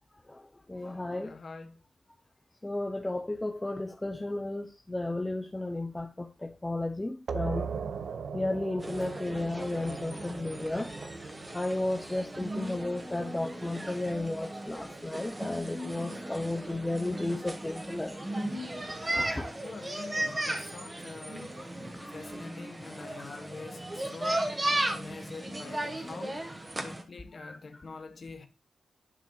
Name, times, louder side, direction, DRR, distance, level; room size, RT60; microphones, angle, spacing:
voice 1, 0.7-1.3 2.6-7.7 8.3-10.9 11.5-18.3 18.9-19.5 20.3-20.5 20.8-20.9 22.0-22.2 23.3-23.4 27.4-27.8, left 2 dB, 15° left, 0.7 m, -34 dB
voice 2, 1.2-1.8 7.4-7.6 8.8-9.1 19.6-21.6 22.1-24.6 24.9-26.4 26.8-28.5, left 4 dB, 50° left, 1.3 m, -45 dB
sound 1, 7.3-12.6, right 6 dB, 75° right, 0.7 m, -39 dB
sound 2, 8.8-27.0, right 1 dB, 20° right, 1.5 m, -36 dB
11.0 x 5.9 x 2.4 m
wide cardioid pair, 90°, 0 cm